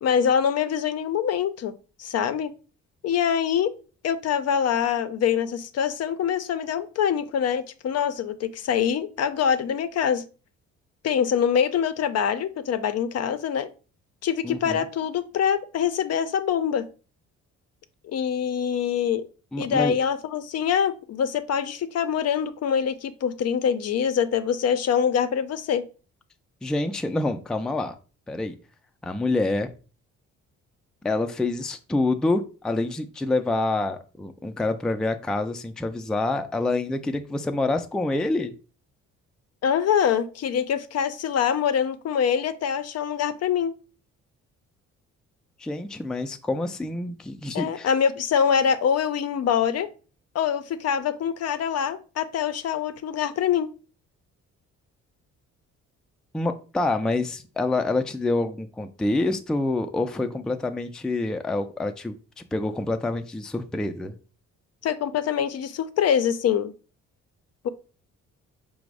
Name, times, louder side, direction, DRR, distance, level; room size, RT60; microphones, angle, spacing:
voice 1, 0.0-1.7 2.0-2.5 3.0-3.7 4.0-10.2 11.0-13.7 14.2-16.9 18.0-19.2 19.6-25.8 39.6-43.7 47.5-49.9 50.3-53.7 64.8-66.7 67.6-67.7, left 8 dB, 55° left, 11 dB, 0.5 m, -24 dB
voice 2, 14.4-14.8 19.5-19.9 26.6-27.9 28.3-28.6 29.0-29.7 31.0-38.5 45.6-47.9 56.3-64.1, left 2 dB, ahead, 6 dB, 0.3 m, -27 dB
5.0 x 2.1 x 4.7 m, 0.36 s
cardioid pair, 90°, 30 cm